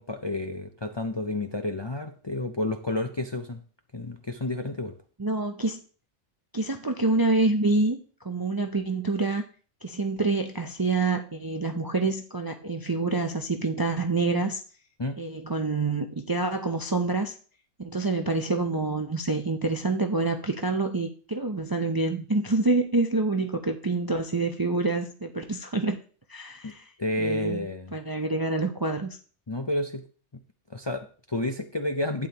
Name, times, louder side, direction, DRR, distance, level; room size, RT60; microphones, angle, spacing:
voice 1, 0.0-3.6 3.9-4.9 15.0-15.2 26.6-26.7 27.0-28.0 29.5-30.0 30.3-30.4 30.7-32.3, left 2 dB, 30° left, 6 dB, 0.5 m, -30 dB
voice 2, 5.2-5.8 6.5-8.0 8.2-9.4 9.8-14.6 15.2-17.3 17.8-26.0 26.3-26.8 27.2-29.2, right 3 dB, 30° right, 5 dB, 0.4 m, -27 dB
11.5 x 9.0 x 2.9 m, 0.40 s
omnidirectional pair, 1.2 m